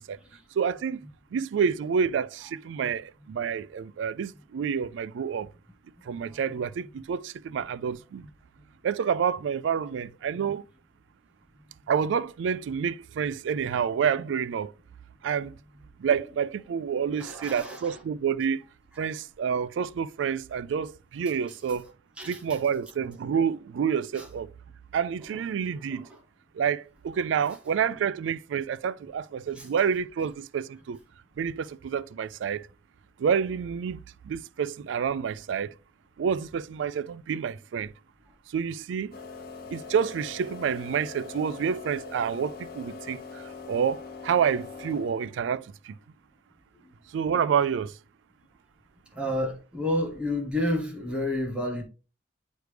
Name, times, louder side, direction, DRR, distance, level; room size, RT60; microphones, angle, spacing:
voice 1, 0.6-5.5 6.1-8.3 8.8-10.6 11.9-14.7 15.2-15.5 16.0-18.6 19.0-21.9 22.3-24.5 24.9-26.1 26.5-31.0 31.4-32.7 33.2-34.0 34.2-35.7 36.2-37.9 38.5-39.1 39.7-46.0 47.1-48.0, right 7 dB, 90° right, 0.3 m, -28 dB
voice 2, 6.1-6.4 17.2-18.0 18.9-19.1 22.2-22.6 24.1-24.3 25.3-25.4 25.7-26.2 27.9-28.0 29.5-29.7 46.8-46.9 49.1-51.8, left 1 dB, 5° right, 1.0 m, -31 dB
sound 1, 39.1-45.4, left 4 dB, 55° left, 1.0 m, -42 dB
9.0 x 3.2 x 3.3 m
head